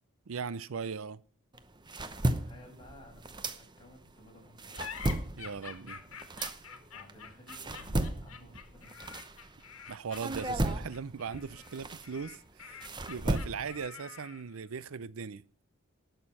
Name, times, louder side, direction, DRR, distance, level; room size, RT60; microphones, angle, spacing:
voice 1, 0.3-1.2 5.4-6.0 9.9-15.4, right 6 dB, 70° right, 0.5 m, -39 dB
sound 1, 1.5-4.1 4.4-9.7 10.1-13.9, right 1 dB, 20° right, 0.8 m, -35 dB
voice 2, 2.0-5.0 6.9-9.3, left 1 dB, 20° left, 5.6 m, -56 dB
sound 2, 4.7-14.6, left 6 dB, 70° left, 1.9 m, -47 dB
19.0 x 6.7 x 5.5 m
head